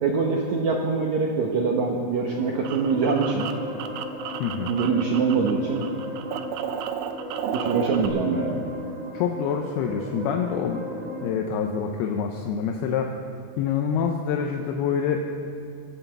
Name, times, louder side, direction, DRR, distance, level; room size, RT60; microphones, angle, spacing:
voice 1, 0.0-3.5 4.7-5.8 7.5-8.6, right 4 dB, 70° right, 0 dB, 1.8 m, -24 dB
sound 1, 2.0-11.3, right 1 dB, 50° right, 1.0 m, -36 dB
sound 2, 2.1-5.5 5.8-8.1, right 8 dB, 90° right, 1.8 m, -33 dB
voice 2, 4.4-4.8 9.1-10.8 11.2-13.1 13.6-15.3, left 7 dB, 80° left, 3 dB, 2.6 m, -26 dB
20.0 x 8.2 x 8.0 m, 2.4 s
omnidirectional pair, 4.7 m